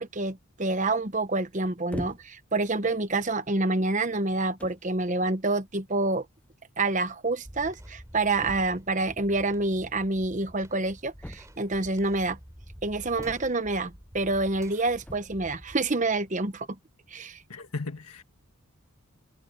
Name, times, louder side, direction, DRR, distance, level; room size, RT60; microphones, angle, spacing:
voice 1, 0.0-6.3 6.8-12.4 12.8-16.7 17.1-17.4, right 2 dB, 35° right, 1.0 m, -27 dB
Against the Wall, 1.9-2.5 3.3-3.4 4.2-4.3 4.6-4.9 6.1-6.2 6.4-6.5 6.8-6.9 8.4-8.9 11.2-11.9 13.2-13.8 15.0-15.5, left 1 dB, 5° left, 0.4 m, -41 dB
sound 1, 7.4-16.6, equal, 15° right, 3.2 m, -49 dB
voice 2, 17.5-18.2, left 3 dB, 90° left, 1.7 m, -36 dB
head